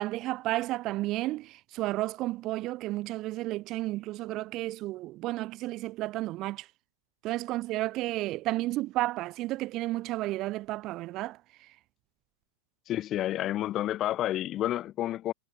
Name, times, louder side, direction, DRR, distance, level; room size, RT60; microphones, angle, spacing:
voice 1, 0.0-6.7 7.2-11.4, right 17 dB, 40° right, 0.9 m, -32 dB
voice 2, 12.9-15.3, left 13 dB, 35° left, 1.7 m, -30 dB
hypercardioid pair, 115°, 0 cm